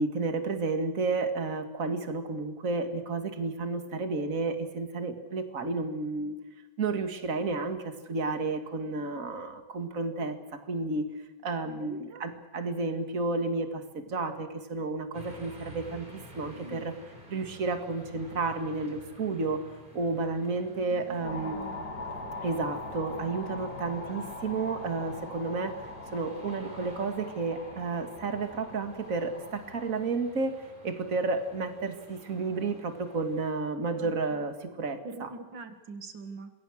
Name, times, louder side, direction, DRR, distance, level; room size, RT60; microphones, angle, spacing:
voice 1, 0.0-6.3 6.8-7.8 8.1-10.3 10.7-11.1 11.4-13.7 14.1-16.1 16.4-16.9 17.3-19.6 20.0-21.6 22.4-25.7 26.1-30.5 30.8-34.5 34.8-35.3, right 3 dB, 50° right, 7 dB, 2.4 m, -31 dB
voice 2, 11.6-12.2 16.5-16.8 20.9-21.8 33.9-34.5 35.0-36.5, right 3 dB, 90° right, 8 dB, 2.5 m, -44 dB
sound 1, 15.1-33.5, equal, 25° right, 4.7 m, -51 dB
sound 2, 21.2-29.9, left 2 dB, 90° left, 4.2 m, -42 dB
26.5 x 21.5 x 6.4 m, 1.1 s
omnidirectional pair, 1.9 m